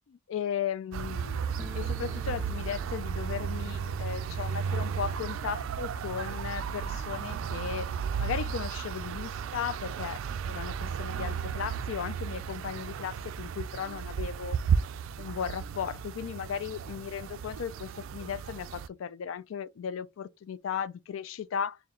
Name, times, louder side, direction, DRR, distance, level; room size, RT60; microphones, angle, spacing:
voice 1, 0.1-7.9 8.2-14.6 15.2-21.8, left 7 dB, 80° left, 0.3 m, -36 dB
sound 1, 0.9-18.9, right 6 dB, 85° right, 0.3 m, -34 dB
sound 2, 1.6-8.3 8.6-8.7 8.9-9.0 9.8-9.9 10.1-11.3, equal, 5° right, 0.3 m, -53 dB
3.7 x 2.2 x 4.2 m
head